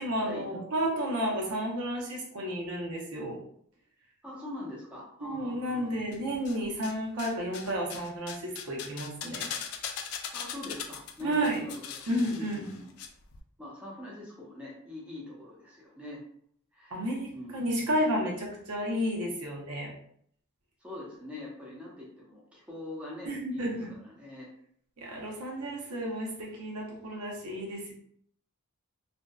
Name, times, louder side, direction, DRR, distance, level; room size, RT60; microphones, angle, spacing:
voice 1, 0.0-3.4 5.2-9.5 11.2-11.7 12.1-12.8 16.9-19.9 23.3-23.9 25.0-27.9, equal, 85° right, -1 dB, 0.7 m, -32 dB
voice 2, 4.2-6.0 10.3-12.9 13.6-16.2 16.7-17.0 17.3-17.6 20.8-24.5, left 1 dB, 5° right, -5 dB, 0.5 m, -43 dB
sound 1, 6.1-6.9 7.2-13.1 13.3-13.4, left 7 dB, 70° left, 0.3 m, -40 dB
2.6 x 2.1 x 2.2 m, 0.65 s
head